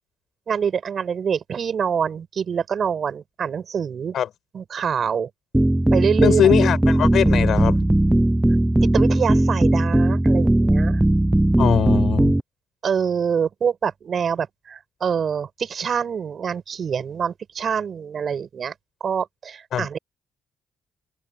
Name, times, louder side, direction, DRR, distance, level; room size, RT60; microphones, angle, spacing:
voice 1, 0.5-4.1 4.5-5.3 5.9-6.5 8.9-11.0 12.8-18.7 19.0-20.0, right 7 dB, 50° right, 6.3 m, -25 dB
sound 1, 5.5-12.4, right 1 dB, 10° right, 0.5 m, -18 dB
voice 2, 6.2-7.7 11.6-12.3 19.7-19.9, left 9 dB, 65° left, 5.1 m, -21 dB
open air
cardioid pair, 90°, 0 cm